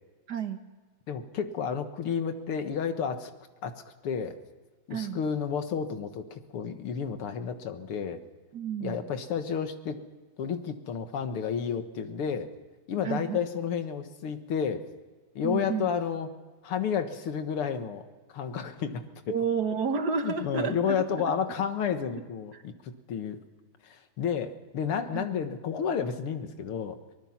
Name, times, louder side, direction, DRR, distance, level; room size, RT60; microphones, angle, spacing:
voice 1, 0.3-0.6 4.9-5.2 8.5-9.0 13.0-13.4 15.4-15.9 19.3-21.0 22.5-22.6 25.1-25.3, right 6 dB, 55° right, 8 dB, 1.6 m, -30 dB
voice 2, 1.1-3.3 3.6-3.7 4.0-4.4 4.9-8.2 8.8-10.0 10.4-12.5 12.9-14.8 15.4-16.3 16.6-19.4 20.2-23.4 23.8-27.0, left 7 dB, 90° left, 8 dB, 2.3 m, -31 dB
23.0 x 19.5 x 5.9 m, 1.3 s
omnidirectional pair, 2.3 m